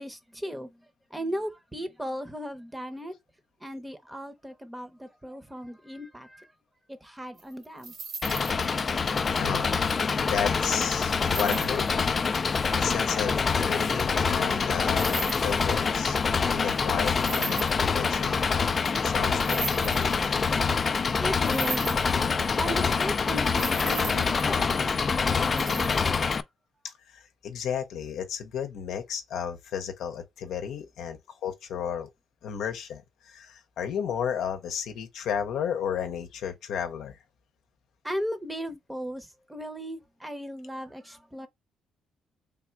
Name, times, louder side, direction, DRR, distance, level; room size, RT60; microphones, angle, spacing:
voice 1, 0.0-3.2 3.6-6.5 6.9-7.9 21.2-26.3 38.0-41.5, equal, 10° right, 0.7 m, -37 dB
sound 1, 7.4-8.7 11.2-11.9 14.9-15.8 17.2-18.2 19.4-20.7 21.4-22.7 23.0-23.1 23.3-24.9 25.4-26.1, right 5 dB, 70° right, 1.6 m, -37 dB
Engine, 8.2-26.4, left 5 dB, 40° left, 0.3 m, -26 dB
voice 2, 9.4-9.7 10.1-11.9 12.8-16.2 16.5-18.4 19.0-20.4 26.8-32.1 32.4-37.2, left 8 dB, 80° left, 0.7 m, -33 dB
3.4 x 2.4 x 4.4 m
cardioid pair, 90°, 0 cm